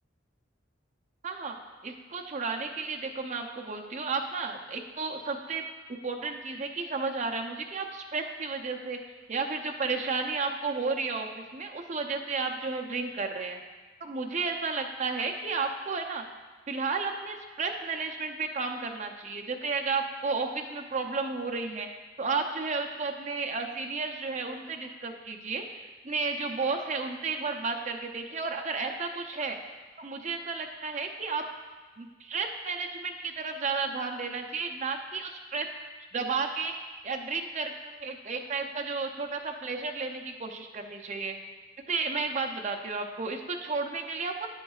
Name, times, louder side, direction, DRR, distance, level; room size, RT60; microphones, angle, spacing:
voice 1, 1.2-1.6 1.8-5.6 6.0-9.0 9.3-13.6 14.0-16.2 16.7-21.9 22.2-29.6 30.0-31.4 32.0-35.7 36.1-36.7 37.0-41.4 41.9-44.5, right 4 dB, 35° right, 3 dB, 0.6 m, -32 dB
9.5 x 7.6 x 2.4 m, 1.3 s
head